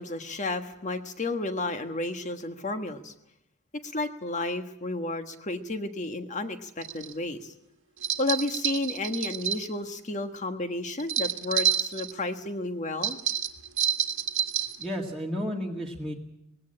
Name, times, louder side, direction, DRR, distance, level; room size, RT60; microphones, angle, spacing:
voice 1, 0.0-3.1 3.7-7.5 8.2-13.2, left 2 dB, 35° left, 7 dB, 1.4 m, -32 dB
sound 1, 6.8-7.1 8.0-9.7 11.0-12.1 13.0-14.8, right 9 dB, 60° right, 1.7 m, -28 dB
voice 2, 14.8-16.1, equal, ahead, -1 dB, 2.0 m, -32 dB
19.5 x 17.0 x 8.8 m, 0.82 s
head